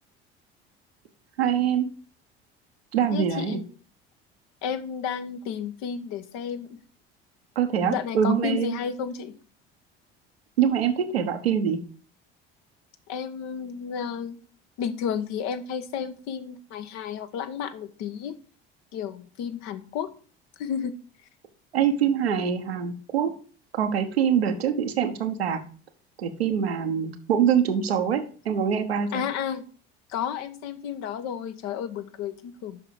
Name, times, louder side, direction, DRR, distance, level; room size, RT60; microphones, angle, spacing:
voice 1, 1.4-1.9 2.9-3.6 7.6-8.8 10.6-11.8 21.7-23.3 23.7-25.6 26.2-29.1, right 8 dB, 90° right, 5 dB, 1.1 m, -24 dB
voice 2, 3.1-3.6 4.6-6.7 7.9-9.3 13.1-14.4 14.8-18.3 18.9-20.1 20.6-20.9 29.1-29.6 30.1-32.8, left 7 dB, 65° left, 9 dB, 1.1 m, -32 dB
7.7 x 5.8 x 4.8 m, 0.41 s
hypercardioid pair, 65°, 30 cm